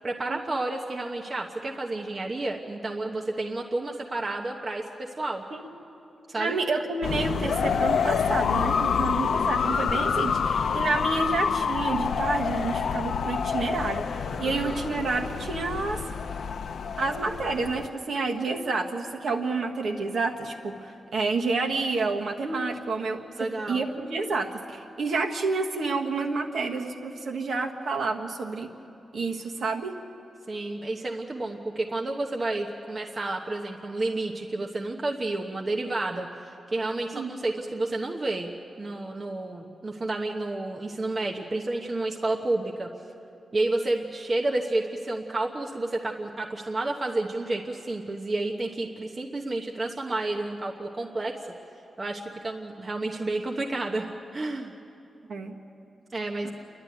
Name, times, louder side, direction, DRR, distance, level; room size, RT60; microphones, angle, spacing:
voice 1, 0.0-5.4 6.3-6.6 14.5-14.8 23.4-23.8 30.5-42.9 43.5-51.4 52.0-54.7 56.1-56.5, right 2 dB, 30° right, 0 dB, 1.0 m, -30 dB
voice 2, 6.4-16.0 17.0-28.7 29.1-30.0 37.1-37.3 55.3-55.6 56.4-56.5, right 3 dB, 55° right, 2 dB, 1.5 m, -29 dB
sound 1, 7.0-17.9, left 6 dB, 70° left, 0.5 m, -27 dB
29.0 x 12.0 x 9.4 m, 2.8 s
wide cardioid pair, 160°, 0 cm